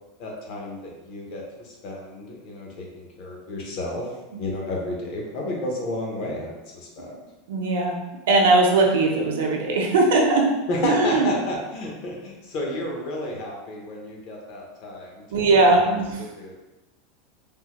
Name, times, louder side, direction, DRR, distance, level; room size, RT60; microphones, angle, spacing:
voice 1, 0.2-4.1 4.4-7.1 10.7-15.5 16.4-16.5, left 1 dB, 40° left, -1 dB, 0.7 m, -31 dB
voice 2, 7.5-8.0 8.3-10.4 10.8-11.3 15.3-16.3, right 3 dB, 80° right, 1 dB, 0.6 m, -19 dB
3.4 x 2.1 x 2.9 m, 1.1 s
supercardioid pair, 180°, 0 cm